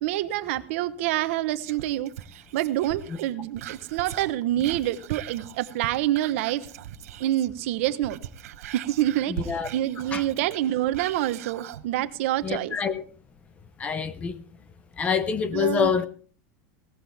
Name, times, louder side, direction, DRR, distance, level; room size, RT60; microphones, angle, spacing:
voice 1, 0.0-2.1 2.5-6.6 7.2-8.2 8.7-12.8 15.5-15.9, right 14 dB, 60° right, 1.1 m, -27 dB
Whispering, 1.6-7.6 7.9-11.9 12.3-12.4, right 11 dB, 85° right, 1.0 m, -40 dB
voice 2, 9.3-9.7 10.1-10.2 12.4-13.0 13.8-14.4 15.0-16.1, left 6 dB, 15° left, 0.8 m, -26 dB
17.5 x 13.5 x 3.5 m
supercardioid pair, 175°, 8 cm